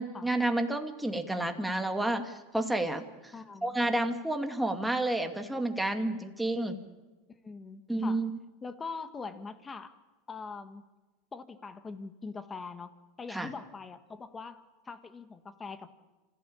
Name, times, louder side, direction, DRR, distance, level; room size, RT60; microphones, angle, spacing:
voice 1, 0.0-3.1 3.6-6.8 7.9-8.3 13.3-13.5, right 1 dB, 5° right, 5 dB, 2.2 m, -30 dB
voice 2, 3.3-3.8 7.4-8.2 8.6-9.9 10.3-10.8 11.3-12.9 13.2-15.9, left 4 dB, 20° left, 10 dB, 1.7 m, -42 dB
27.0 x 15.5 x 8.7 m, 1.2 s
supercardioid pair, 110°, 0 cm